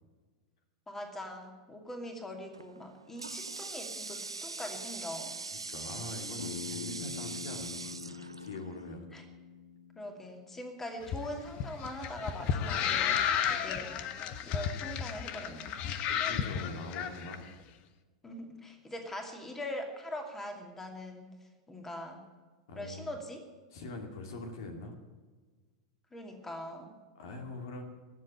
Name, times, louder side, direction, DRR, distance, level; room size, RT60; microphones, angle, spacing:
voice 1, 0.9-5.4 9.1-9.2 10.0-13.9 14.4-15.7 18.2-21.3 21.7-22.2 22.8-23.4 26.1-27.0, left 1 dB, 15° left, 4 dB, 2.5 m, -42 dB
Water tap faucet, 2.5-9.0, right 3 dB, 85° right, 0.4 m, -42 dB
voice 2, 5.5-9.1 16.1-17.5 22.7-23.1 23.7-24.9 27.2-27.8, left 2 dB, 55° left, 4 dB, 2.4 m, -43 dB
Bass guitar, 6.4-10.7, left 7 dB, 75° left, 0.8 m, -45 dB
sound 1, 11.0-17.4, left 8 dB, 40° left, 1.1 m, -32 dB
20.0 x 7.7 x 8.8 m, 1.4 s
figure-of-eight pair, 85°, 3 cm